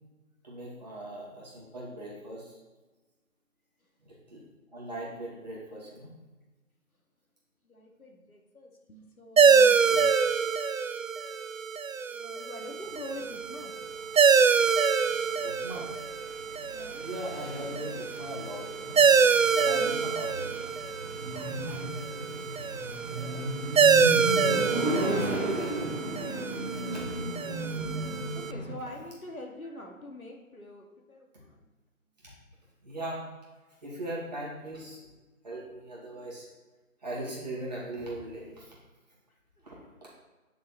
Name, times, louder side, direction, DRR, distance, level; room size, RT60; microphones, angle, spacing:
voice 1, 0.4-2.6 4.0-4.4 4.7-6.1 9.9-10.1 15.4-15.9 17.0-19.0 19.6-20.7 21.2-21.8 22.2-22.7 24.7-25.7 26.9-27.1 32.2-32.3 32.8-33.2 33.8-35.0 35.4-36.5 37.0-38.7 39.6-40.1, right 1 dB, 30° right, -6 dB, 2.3 m, -40 dB
voice 2, 7.6-9.8 12.1-13.7 16.7-17.1 19.7-20.1 22.7-23.5 25.2-25.7 28.3-31.7 36.4-36.5 39.3-39.4, left 1 dB, 85° left, 1 dB, 2.1 m, -45 dB
sound 1, 9.4-28.5, right 6 dB, 65° right, 0.6 m, -26 dB
sound 2, 12.9-28.7, right 1 dB, 10° right, 1.4 m, -35 dB
9.4 x 6.4 x 4.3 m, 1.2 s
figure-of-eight pair, 170°, 42 cm